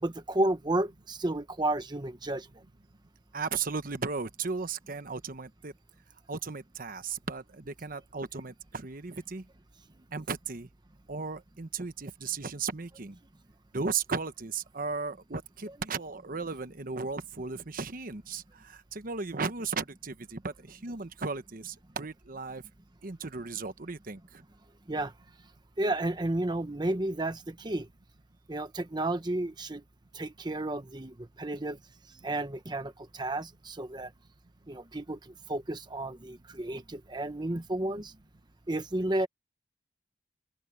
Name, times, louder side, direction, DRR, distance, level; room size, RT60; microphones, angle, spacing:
voice 1, 0.0-2.5 24.9-25.1 25.8-27.9 28.5-29.8 30.1-31.8 32.2-34.1 34.7-38.1 38.7-39.3, right 1 dB, 25° right, 1.0 m, -32 dB
voice 2, 3.3-5.7 6.3-9.4 10.1-10.7 11.1-13.2 13.7-22.6 23.0-24.4 37.9-38.0, right 4 dB, 50° right, 1.1 m, -36 dB
open air
head